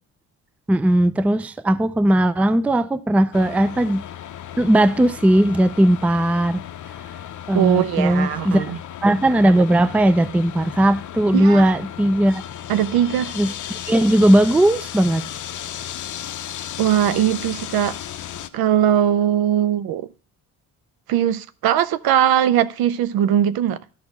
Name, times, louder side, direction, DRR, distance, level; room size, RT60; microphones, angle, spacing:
voice 1, 0.7-4.0 4.6-6.6 7.5-8.7 9.0-12.4 13.3-15.3, right 1 dB, 5° right, 0.4 m, -18 dB
sound 1, 3.3-18.5, left 11 dB, 50° left, 0.7 m, -35 dB
voice 2, 7.5-8.8 11.3-11.7 12.7-13.3 16.8-17.9 18.5-20.1 21.1-23.8, right 10 dB, 65° right, 0.6 m, -20 dB
12.0 x 4.5 x 5.8 m
supercardioid pair, 75°, 39 cm